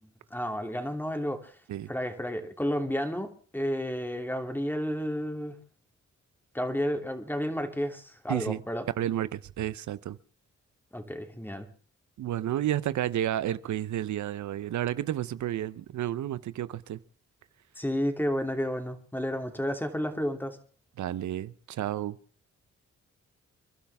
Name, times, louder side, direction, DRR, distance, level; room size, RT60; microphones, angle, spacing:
voice 1, 0.3-1.5 1.9-5.6 6.5-8.9 10.9-11.7 17.8-20.6, equal, 5° left, 2.9 m, -31 dB
voice 2, 8.3-8.6 9.0-10.2 12.2-17.0 21.0-22.2, right 12 dB, 80° right, 0.8 m, -31 dB
29.5 x 11.5 x 3.5 m
cardioid pair, 60°, 29 cm